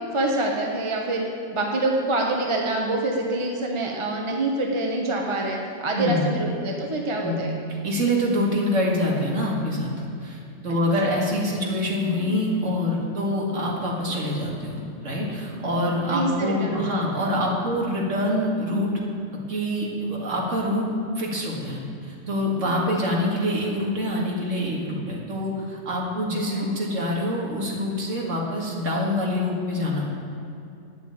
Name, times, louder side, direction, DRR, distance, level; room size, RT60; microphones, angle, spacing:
voice 1, 0.1-1.2 1.5-7.5 16.0-17.0 17.4-17.5 26.3-26.7, right 2 dB, 20° right, 0 dB, 0.9 m, -26 dB
voice 2, 5.9-6.3 7.2-7.4 7.8-9.9 10.2-19.0 19.5-20.9 21.2-30.1, left 1 dB, 45° right, -3 dB, 2.4 m, -25 dB
9.3 x 8.3 x 8.8 m, 2.7 s
omnidirectional pair, 1.9 m